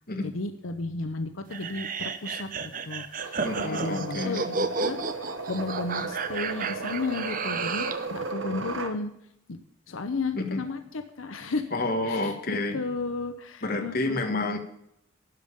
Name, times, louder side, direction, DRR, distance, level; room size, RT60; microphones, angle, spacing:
voice 1, 0.2-9.1 9.5-9.6 9.9-11.7 12.1-14.6, left 3 dB, 85° left, 7 dB, 0.9 m, -34 dB
sound 1, 1.5-8.1, right 4 dB, 40° right, 0.7 m, -32 dB
sound 2, 3.2-9.0, right 3 dB, 75° right, 1.2 m, -35 dB
voice 2, 3.4-4.5 10.3-10.7 11.7-12.8 13.6-14.6, left 2 dB, 45° left, 5 dB, 1.5 m, -29 dB
12.0 x 5.4 x 8.7 m, 0.78 s
head